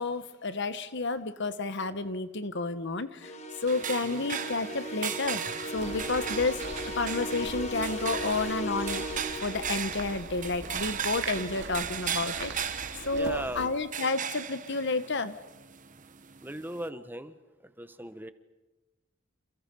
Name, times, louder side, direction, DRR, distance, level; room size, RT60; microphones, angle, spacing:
voice 1, 0.0-3.3 3.6-5.4 5.7-6.7 6.9-9.0 9.4-15.3, left 3 dB, 65° left, 12 dB, 1.3 m, -31 dB
sound 1, 3.2-10.2, equal, 35° left, 2.0 m, -37 dB
sound 2, 3.7-16.9, right 8 dB, 40° right, 1.0 m, -37 dB
sound 3, 5.7-13.7, right 3 dB, 65° right, 2.2 m, -42 dB
voice 2, 13.1-13.7 16.4-17.3 17.6-18.3, right 1 dB, 10° right, 10 dB, 1.1 m, -38 dB
29.5 x 28.0 x 5.5 m, 1.1 s
head